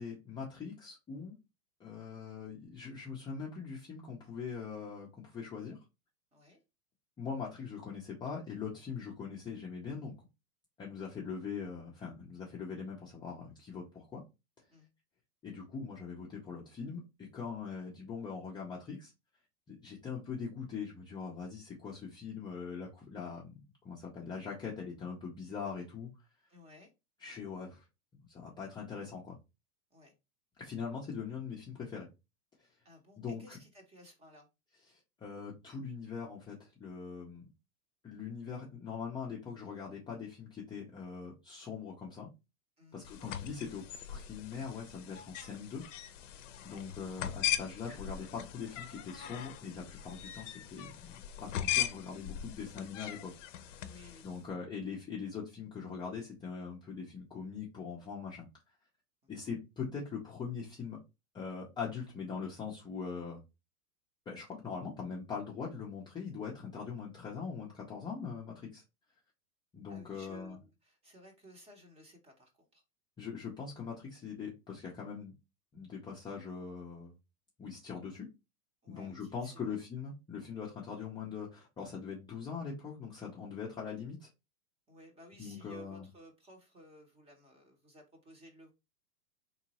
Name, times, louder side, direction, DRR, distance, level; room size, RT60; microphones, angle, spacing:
voice 1, 0.0-1.4 1.8-5.8 7.2-10.2 10.8-14.2 15.4-19.1 19.7-26.1 27.2-27.8 28.3-29.4 30.6-32.1 33.2-33.6 34.9-37.5 38.0-42.3 42.9-45.8 46.6-53.8 54.2-58.5 59.3-61.0 61.3-63.4 64.3-68.8 69.7-70.6 73.2-75.3 75.7-77.1 77.6-78.3 78.9-84.3 85.4-86.1, left 6 dB, 10° left, 0.5 m, -42 dB
voice 2, 26.5-26.9 29.9-30.1 32.8-34.5 42.8-43.1 46.6-46.9 53.8-54.5 59.2-59.5 69.9-72.8 78.8-79.8 84.9-88.7, left 1 dB, 15° right, 0.8 m, -57 dB
sound 1, 43.0-54.4, left 11 dB, 55° left, 0.6 m, -39 dB
3.6 x 3.1 x 2.8 m
hypercardioid pair, 115°, 46 cm